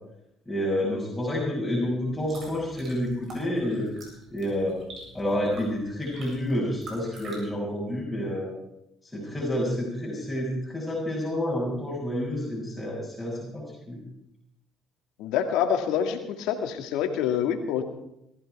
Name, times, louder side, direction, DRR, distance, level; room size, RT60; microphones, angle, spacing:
voice 1, 0.5-3.9 4.3-4.8 5.1-8.5 9.1-14.0, left 1 dB, 10° left, -7 dB, 6.3 m, -29 dB
sound 1, 2.0-7.4, right 2 dB, 50° right, 7.7 m, -46 dB
voice 2, 15.2-17.8, left 8 dB, 80° left, 5 dB, 2.0 m, -26 dB
19.0 x 14.0 x 4.7 m, 0.82 s
supercardioid pair, 75°, 0 cm